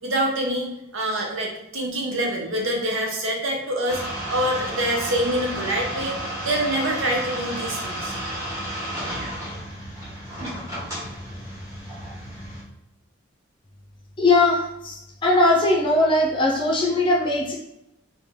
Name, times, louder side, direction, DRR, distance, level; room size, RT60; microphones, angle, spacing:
voice 1, 0.0-4.0 4.3-8.1, right 1 dB, 75° right, 0 dB, 0.9 m, -25 dB
sound 1, 3.9-12.6, right 1 dB, 15° right, 1.0 m, -32 dB
voice 2, 14.2-17.5, left 2 dB, 25° left, -3 dB, 0.5 m, -20 dB
3.2 x 2.8 x 3.6 m, 0.87 s
head